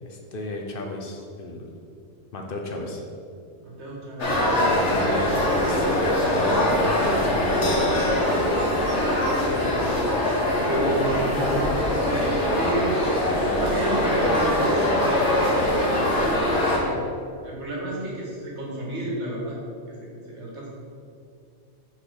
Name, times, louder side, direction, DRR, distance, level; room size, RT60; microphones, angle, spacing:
voice 1, 0.0-1.7 2.3-3.0 4.6-5.2 5.6-5.9 6.2-7.9, left 2 dB, 55° left, 2 dB, 0.8 m, -33 dB
voice 2, 3.6-5.0 9.4-10.0 10.7-11.6 12.5-13.2 13.6-17.0 17.4-19.6 19.9-20.7, right 1 dB, 75° right, -3 dB, 1.7 m, -31 dB
sound 1, 4.2-16.8, left 1 dB, 80° left, 1.6 m, -22 dB
6.0 x 4.2 x 4.9 m, 2.4 s
omnidirectional pair, 1.2 m